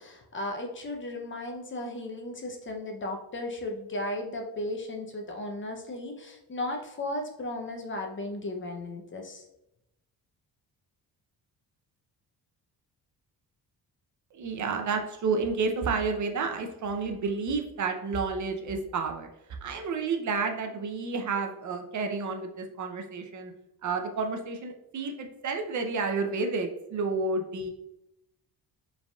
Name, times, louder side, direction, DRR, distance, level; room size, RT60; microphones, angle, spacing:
voice 1, 0.0-9.5, left 1 dB, 30° left, 3 dB, 0.6 m, -35 dB
voice 2, 14.3-19.3 19.6-23.5 23.8-27.7, right 4 dB, 50° right, 4 dB, 0.6 m, -30 dB
4.7 x 3.4 x 2.3 m, 0.88 s
cardioid pair, 105°, 39 cm